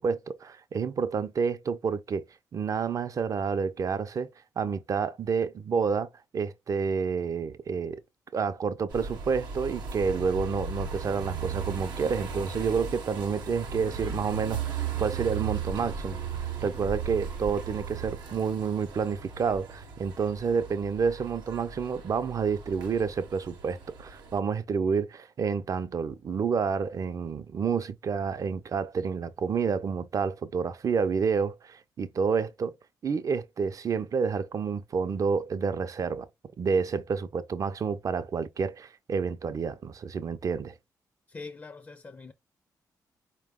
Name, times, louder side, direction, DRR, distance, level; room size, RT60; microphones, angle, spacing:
voice 1, 0.0-2.2 2.5-4.3 4.6-8.0 8.3-32.7 33.0-36.3 36.6-40.7, right 5 dB, 50° right, 0.5 m, -29 dB
sound 1, 8.9-24.4, right 6 dB, 90° right, 0.8 m, -37 dB
voice 2, 41.3-42.3, left 4 dB, 30° left, 0.5 m, -43 dB
4.3 x 2.2 x 3.6 m
cardioid pair, 75°, 7 cm